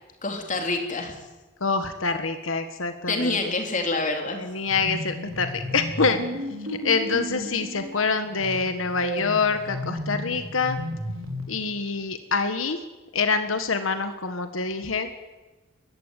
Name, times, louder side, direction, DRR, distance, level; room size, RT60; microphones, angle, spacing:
voice 1, 0.2-1.1 3.1-4.4, left 2 dB, 40° left, 3 dB, 3.4 m, -27 dB
voice 2, 1.6-3.5 4.4-6.2 6.7-10.8 11.5-12.8 13.1-15.1, left 4 dB, 80° left, 8 dB, 1.5 m, -26 dB
sound 1, 4.7-11.5, equal, 85° right, 5.0 m, -34 dB
21.0 x 15.5 x 9.3 m, 1.2 s
head